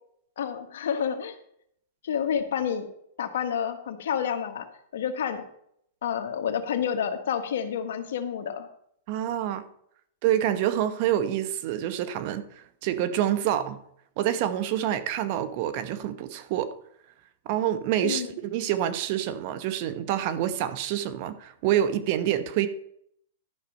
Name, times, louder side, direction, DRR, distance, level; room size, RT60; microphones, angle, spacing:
voice 1, 0.4-1.4 2.0-2.9 3.2-4.7 4.9-5.4 6.0-8.7 18.0-18.3, left 8 dB, 75° left, 1.4 m, -29 dB
voice 2, 9.1-9.6 10.2-12.5 12.8-13.8 14.2-16.7 17.5-22.7, right 11 dB, 45° right, 0.9 m, -27 dB
12.0 x 5.9 x 5.3 m
hypercardioid pair, 145°, 0 cm